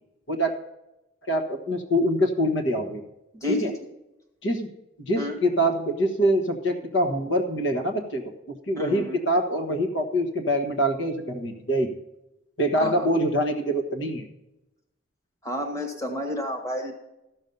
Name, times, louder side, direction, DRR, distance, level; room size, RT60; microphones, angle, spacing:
voice 1, 1.2-3.0 3.5-3.7 4.4-4.7 5.0-8.2 8.7-11.9 12.6-14.2, equal, 65° left, 5 dB, 1.4 m, -24 dB
voice 2, 3.4-3.8 5.1-5.4 8.8-9.2 12.8-13.1 15.4-16.9, left 1 dB, 15° left, 2 dB, 1.6 m, -30 dB
14.0 x 6.3 x 5.3 m, 0.92 s
head